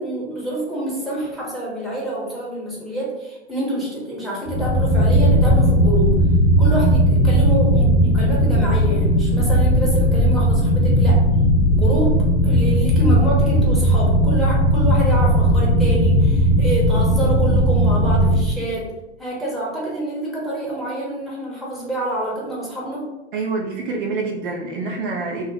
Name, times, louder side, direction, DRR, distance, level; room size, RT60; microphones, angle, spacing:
voice 1, 0.0-6.2 6.6-11.2 11.7-18.9 19.2-23.1, right 1 dB, ahead, -6 dB, 0.8 m, -27 dB
sound 1, 4.5-18.4, equal, 55° left, 0.9 m, -16 dB
voice 2, 23.3-25.5, right 3 dB, 50° right, -1 dB, 0.6 m, -26 dB
2.4 x 2.0 x 3.9 m, 0.99 s
figure-of-eight pair, 95°, 35 cm